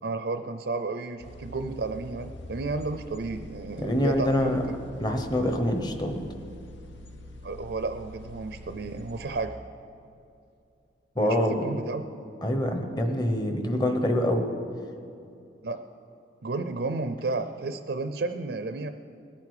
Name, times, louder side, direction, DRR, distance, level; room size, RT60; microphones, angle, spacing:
voice 1, 0.0-4.8 7.4-9.5 11.2-12.0 15.6-15.8 16.4-18.9, right 3 dB, 65° right, 8 dB, 0.5 m, -32 dB
sound 1, 1.2-9.5, left 1 dB, 85° left, 0.8 m, -44 dB
voice 2, 3.8-4.6 5.0-6.1 11.2-11.7 12.4-14.5, left 1 dB, 25° left, 5 dB, 1.0 m, -25 dB
20.0 x 8.4 x 4.9 m, 2.6 s
head